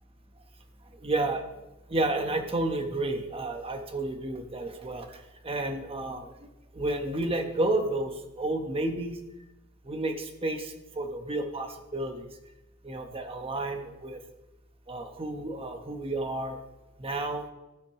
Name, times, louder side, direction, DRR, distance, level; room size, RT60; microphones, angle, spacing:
voice 1, 1.0-1.4 1.9-9.2 9.8-12.3 12.8-14.2 14.9-16.6 17.0-17.4, right 2 dB, 30° right, 5 dB, 1.0 m, -31 dB
15.0 x 5.8 x 4.8 m, 1.0 s
head